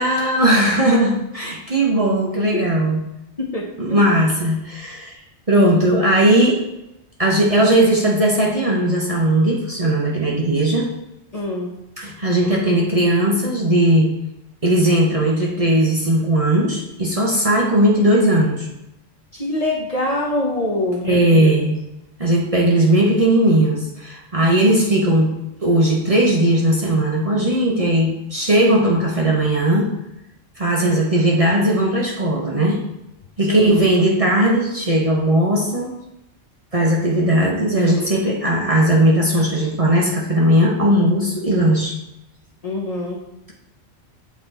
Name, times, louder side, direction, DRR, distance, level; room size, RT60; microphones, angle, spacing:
voice 1, 0.0-3.0 3.8-5.2 5.5-6.6 7.2-10.9 12.0-14.1 14.6-18.7 21.0-21.8 22.2-25.3 25.6-29.9 30.6-32.8 33.4-35.9 36.7-42.0, right 1 dB, 30° right, -3 dB, 1.0 m, -17 dB
voice 2, 3.4-4.0 11.3-11.7 19.3-21.5 30.8-31.0 33.4-33.8 42.6-43.2, left 2 dB, 35° left, -2 dB, 0.9 m, -25 dB
7.6 x 3.8 x 4.0 m, 0.90 s
omnidirectional pair, 1.3 m